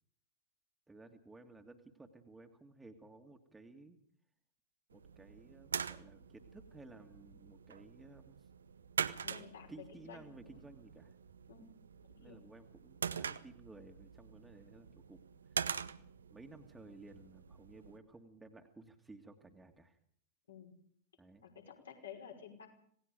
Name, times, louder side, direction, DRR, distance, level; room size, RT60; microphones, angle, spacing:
voice 1, 0.9-4.0 4.9-8.5 9.7-11.1 12.2-15.2 15.5-15.7 16.3-20.0 21.2-21.5, right 3 dB, 10° right, 3 dB, 2.1 m, -56 dB
sound 1, 4.9-18.0, right 6 dB, 70° right, 0.8 m, -44 dB
voice 2, 9.2-10.6 11.5-11.7 12.2-12.4 15.8-16.0 20.5-20.7 21.4-22.7, left 7 dB, 70° left, 2 dB, 5.5 m, -52 dB
26.5 x 18.5 x 5.3 m, 0.63 s
figure-of-eight pair, 90°, 0 cm